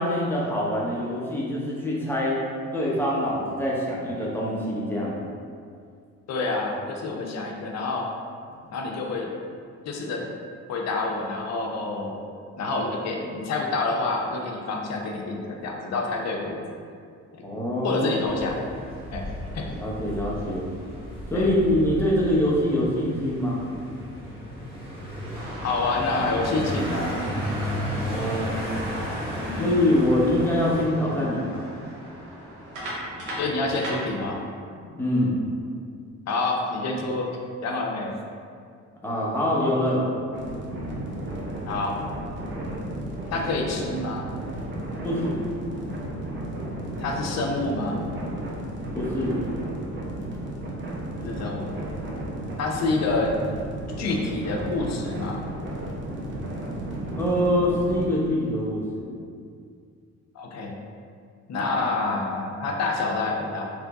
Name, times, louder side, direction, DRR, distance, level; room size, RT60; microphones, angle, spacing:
voice 1, 0.0-2.4 2.7-5.2 17.4-18.1 19.7-20.7 21.3-23.6 27.9-28.6 29.6-31.7 35.0-35.4 39.0-40.0 45.0-45.5 48.9-49.4 57.1-59.1, left 1 dB, 5° left, -5 dB, 0.8 m, -24 dB
voice 2, 6.3-8.1 8.7-9.3 9.9-10.2 10.7-12.2 12.6-16.6 17.8-18.6 19.1-19.7 21.3-21.5 25.6-27.2 28.8-28.9 29.4-29.7 33.4-34.4 36.3-37.3 37.6-38.1 41.7-42.0 43.3-44.3 47.0-48.0 51.2-51.7 52.6-53.3 54.0-55.4 60.3-60.7 61.5-63.7, left 3 dB, 60° left, 1 dB, 0.6 m, -27 dB
sound 1, 18.2-30.8, equal, 20° right, 1.0 m, -34 dB
sound 2, 25.3-34.4, equal, 90° right, 0.9 m, -36 dB
sound 3, 40.3-58.1, right 1 dB, 40° right, 0.6 m, -33 dB
3.0 x 2.5 x 3.4 m, 2.2 s
cardioid pair, 90°, 30 cm